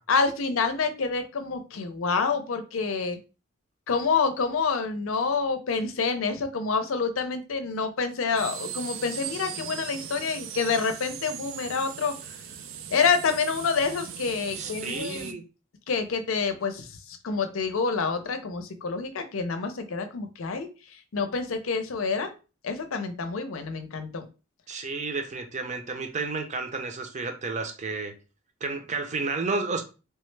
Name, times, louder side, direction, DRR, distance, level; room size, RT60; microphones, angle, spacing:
voice 1, 0.1-3.2 3.9-12.1 12.9-15.4 15.9-20.7 21.1-22.3 22.6-24.3, left 5 dB, 90° left, 0.5 m, -27 dB
sound 1, 8.4-15.3, right 8 dB, 85° right, 0.4 m, -39 dB
voice 2, 14.5-15.4 24.7-28.1 28.6-29.8, right 3 dB, 35° right, 0.6 m, -31 dB
3.3 x 2.1 x 3.2 m
head